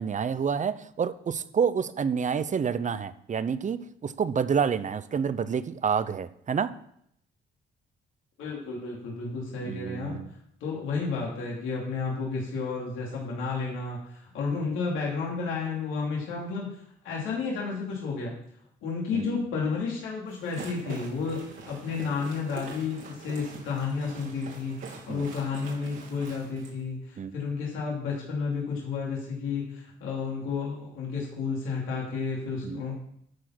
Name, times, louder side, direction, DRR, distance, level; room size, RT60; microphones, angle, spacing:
voice 1, 0.0-6.7 9.6-10.3 19.1-19.4 25.1-25.2 27.2-27.4 32.6-32.8, right 6 dB, 40° right, 14 dB, 0.7 m, -28 dB
voice 2, 8.4-10.2 10.6-16.7 17.0-18.4 18.8-32.9, left 4 dB, 90° left, -3 dB, 2.9 m, -32 dB
sound 1, 20.3-26.7, right 5 dB, 75° right, 3.3 m, -44 dB
12.5 x 4.9 x 5.9 m, 0.69 s
cardioid pair, 90°, 20 cm